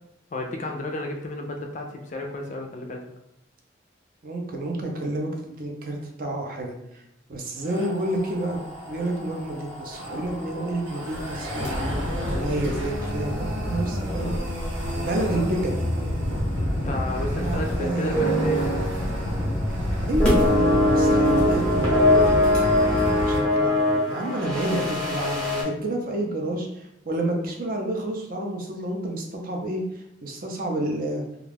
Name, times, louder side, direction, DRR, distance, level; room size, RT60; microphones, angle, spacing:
voice 1, 0.3-3.0 16.8-18.8, left 2 dB, 40° left, 2 dB, 0.4 m, -32 dB
voice 2, 4.2-7.0 7.3-11.7 12.3-14.3 15.0-15.8 17.4-18.1 20.0-22.5 23.2-31.2, right 1 dB, 45° right, 1 dB, 0.5 m, -29 dB
sound 1, 7.6-23.4, equal, 80° right, 1.2 m, -29 dB
sound 2, 11.0-23.7, equal, 5° left, 0.7 m, -33 dB
sound 3, 18.1-18.9 19.2-19.5 20.2-25.6, left 1 dB, 20° right, 0.8 m, -21 dB
2.4 x 2.3 x 3.3 m, 0.82 s
head